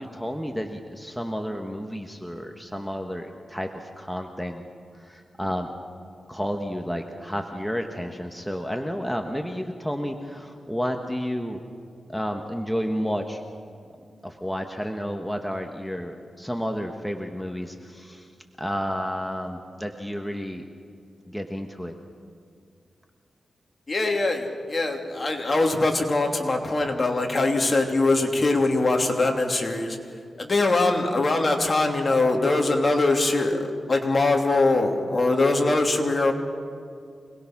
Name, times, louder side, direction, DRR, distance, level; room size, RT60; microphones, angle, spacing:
voice 1, 0.0-4.6 4.9-5.7 6.3-11.6 12.1-13.4 14.2-18.3 18.6-20.6 21.2-21.9, equal, 5° left, 3 dB, 1.4 m, -31 dB
voice 2, 23.9-30.0 30.4-36.3, left 2 dB, 35° left, 2 dB, 3.0 m, -22 dB
26.5 x 20.0 x 6.1 m, 2.3 s
cardioid pair, 85°, 0 cm